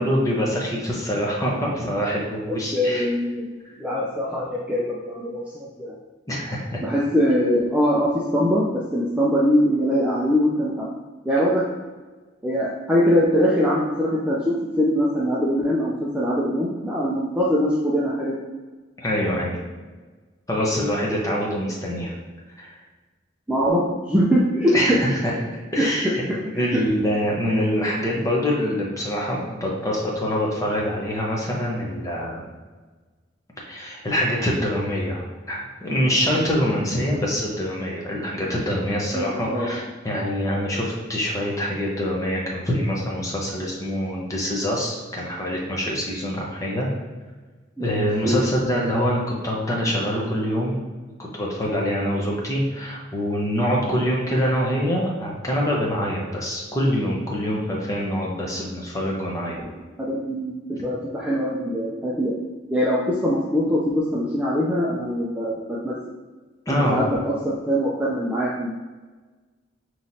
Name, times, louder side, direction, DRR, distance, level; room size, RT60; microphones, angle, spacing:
voice 1, 0.0-3.1 6.3-6.8 19.0-19.6 20.5-22.1 22.6-22.8 24.7-25.0 25.2-25.3 25.7-26.2 26.6-32.5 33.7-46.9 47.8-50.8 51.3-59.6 66.7-67.0, equal, 15° left, -3 dB, 0.8 m, -25 dB
voice 2, 2.7-3.5 3.8-5.9 6.8-10.9 11.2-11.6 12.4-18.3 23.5-25.0 25.7-25.9 26.5-26.8 39.1-39.8 47.8-47.9 48.2-48.4 59.6-62.4 62.7-66.0 66.7-68.8, equal, 5° right, -6 dB, 0.4 m, -22 dB
5.5 x 3.1 x 2.7 m, 1.3 s
head